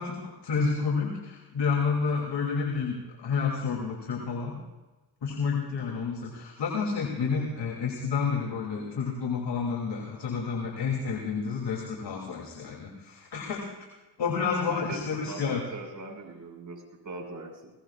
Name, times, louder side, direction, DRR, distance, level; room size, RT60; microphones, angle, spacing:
voice 1, 0.0-4.6 5.2-13.7 14.2-15.6, left 5 dB, 60° left, 0 dB, 3.1 m, -30 dB
voice 2, 14.7-17.7, right 3 dB, 40° right, 2 dB, 6.3 m, -40 dB
21.0 x 21.0 x 2.5 m, 1.1 s
supercardioid pair, 60°, 46 cm